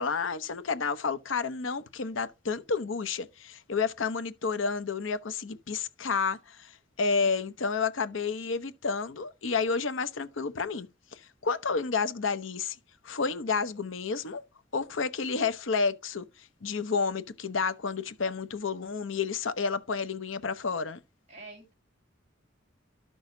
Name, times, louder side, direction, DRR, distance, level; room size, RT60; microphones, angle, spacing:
voice 1, 0.0-12.8 13.0-14.4 14.7-21.0, left 5 dB, 80° left, 0.8 m, -30 dB
voice 2, 7.1-7.5 21.3-21.7, right 3 dB, 35° right, 2.0 m, -48 dB
13.0 x 6.2 x 2.7 m
head